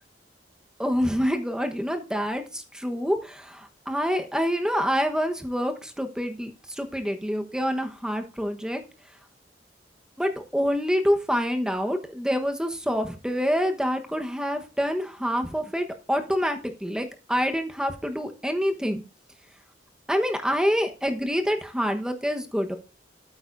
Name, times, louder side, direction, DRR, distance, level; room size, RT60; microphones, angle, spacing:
voice 1, 0.8-8.8 10.2-19.0 20.1-22.8, equal, 5° right, 6 dB, 1.1 m, -27 dB
13.0 x 8.8 x 2.6 m, 0.33 s
head